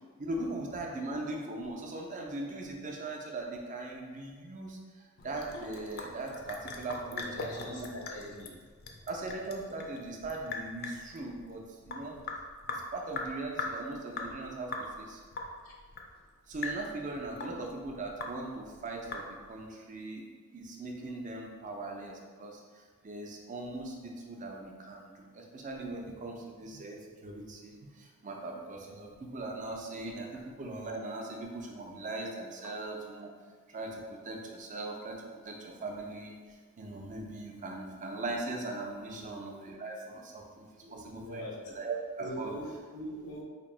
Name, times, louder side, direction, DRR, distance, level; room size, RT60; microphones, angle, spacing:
voice 1, 0.2-4.8 5.2-7.9 9.1-12.2 12.7-15.2 16.5-20.2 20.5-33.3 33.7-41.5 41.7-42.5, right 2 dB, 35° right, 1 dB, 0.5 m, -40 dB
Sink (filling or washing) / Drip, 5.2-19.6, left 3 dB, 45° left, 0.4 m, -41 dB
voice 2, 7.1-8.6 13.8-13.9 15.6-15.7 17.3-17.6 39.1-39.3 40.8-41.7 42.2-43.4, equal, 80° left, -2 dB, 0.7 m, -42 dB
2.8 x 2.6 x 4.2 m, 1.5 s
head